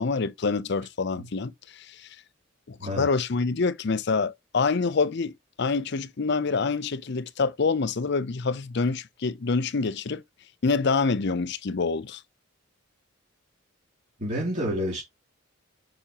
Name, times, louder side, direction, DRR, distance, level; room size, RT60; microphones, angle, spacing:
voice 1, 0.0-2.1 2.7-5.3 5.6-10.2 10.6-12.2, left 4 dB, 55° left, 0.6 m, -26 dB
voice 2, 14.2-15.0, equal, 35° right, 3.3 m, -29 dB
8.7 x 5.5 x 2.9 m
head